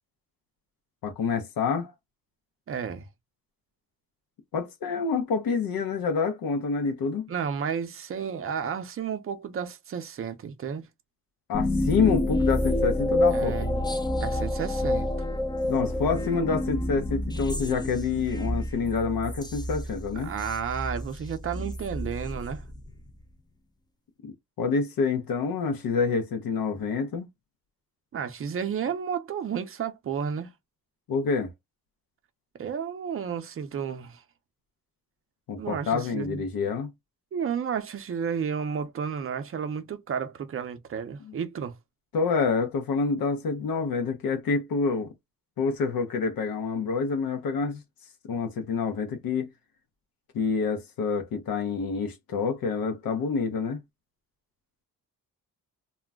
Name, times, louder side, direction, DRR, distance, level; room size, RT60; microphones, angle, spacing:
voice 1, 1.0-1.9 4.5-7.3 11.5-13.6 15.6-20.3 24.2-27.3 31.1-31.5 35.5-36.9 41.3-41.4 42.1-45.1 45.6-47.8 48.3-49.5 50.3-53.8, left 5 dB, 85° left, 0.7 m, -27 dB
voice 2, 2.7-3.1 7.3-10.9 13.3-15.1 20.2-22.7 28.1-30.5 32.6-34.2 35.6-36.4 37.3-41.8, right 7 dB, 40° right, 0.5 m, -32 dB
sound 1, 11.5-23.1, left 1 dB, 15° left, 0.4 m, -29 dB
2.2 x 2.1 x 3.4 m
wide cardioid pair, 125°, 35 cm